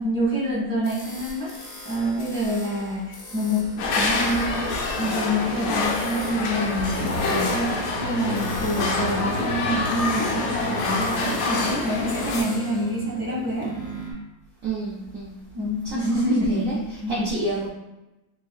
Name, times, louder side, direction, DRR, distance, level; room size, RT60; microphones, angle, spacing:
voice 1, 0.0-1.5 1.8-4.7 5.0-13.7 15.5-17.3, equal, 15° left, -8 dB, 0.5 m, -27 dB
sound 1, 0.8-14.1, equal, 55° left, 0.6 m, -42 dB
sound 2, 3.8-12.4, left 3 dB, 80° left, 1.2 m, -26 dB
sound 3, 5.4-14.0, right 1 dB, 60° right, 1.1 m, -36 dB
voice 2, 5.6-5.9 14.6-15.4 15.8-16.0 16.3-16.7 17.1-17.7, right 2 dB, 90° right, -5 dB, 0.7 m, -29 dB
4.0 x 2.4 x 2.2 m, 0.99 s
omnidirectional pair, 2.1 m